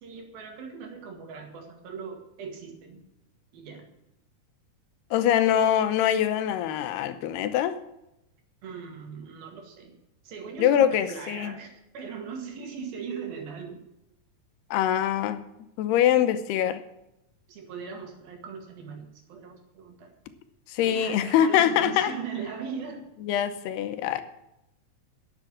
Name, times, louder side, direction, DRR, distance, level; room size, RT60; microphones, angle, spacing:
voice 1, 0.0-3.0 3.5-3.9 5.4-5.7 8.6-9.9 10.2-13.8 17.5-20.1 20.8-23.1, right 6 dB, 65° right, 3.6 m, -39 dB
voice 2, 5.1-7.8 10.6-11.5 14.7-15.5 15.8-16.8 20.7-22.1 23.3-24.2, left 10 dB, 85° left, 2.9 m, -23 dB
10.5 x 7.6 x 8.7 m
omnidirectional pair, 4.6 m